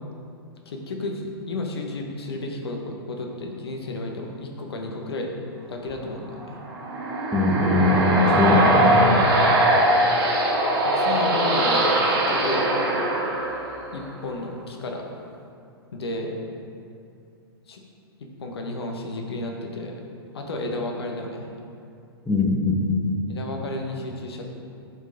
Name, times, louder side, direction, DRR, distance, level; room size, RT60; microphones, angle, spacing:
voice 1, 0.7-5.3 5.7-6.6 10.8-13.0 13.9-15.0 15.9-16.4 17.7-17.8 18.2-19.9 20.3-21.5 23.3-24.5, left 2 dB, 75° left, 2 dB, 1.0 m, -32 dB
sound 1, 6.5-14.1, right 1 dB, 55° right, 1.4 m, -21 dB
voice 2, 7.3-9.2 22.3-23.2, left 2 dB, 5° left, -1 dB, 0.9 m, -21 dB
8.0 x 4.6 x 3.8 m, 2.4 s
hypercardioid pair, 115°, 13 cm